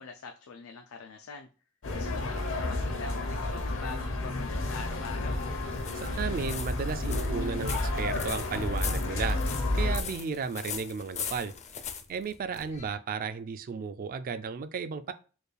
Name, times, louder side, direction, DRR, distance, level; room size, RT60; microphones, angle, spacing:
voice 1, 0.0-1.5 2.0-5.4, left 5 dB, 90° left, 0.4 m, -44 dB
sound 1, 1.8-10.0, left 2 dB, 65° left, 0.7 m, -31 dB
sound 2, 5.0-13.0, left 7 dB, 35° left, 0.4 m, -41 dB
voice 2, 5.9-9.4 9.7-11.5 12.1-15.1, right 5 dB, 45° right, 0.3 m, -34 dB
4.4 x 2.4 x 3.2 m
head